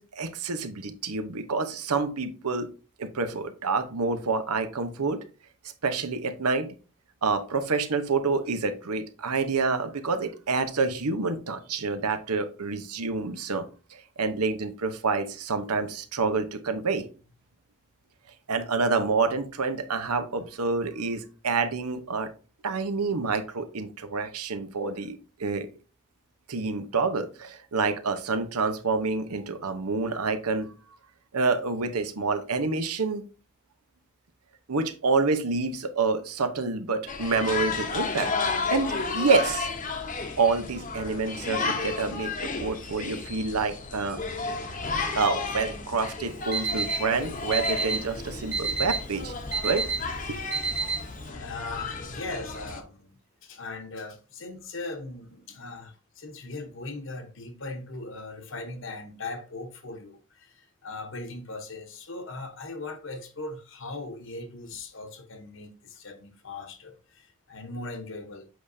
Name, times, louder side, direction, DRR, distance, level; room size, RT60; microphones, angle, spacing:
voice 1, 0.0-2.7 3.0-5.2 5.8-6.7 7.2-13.6 13.9-17.1 18.5-22.3 22.6-25.7 26.5-30.7 31.3-33.2 34.7-38.3 38.7-39.7 40.4-44.2 45.1-49.3 49.6-49.9 50.3-50.4, right 4 dB, 90° right, 0.9 m, -28 dB
sound 1, 37.1-52.8, left 4 dB, 35° left, 0.8 m, -33 dB
Alarm, 46.3-51.3, right 4 dB, 50° right, 1.3 m, -31 dB
voice 2, 51.3-68.5, left 2 dB, 55° left, 1.0 m, -39 dB
7.8 x 5.0 x 2.7 m
head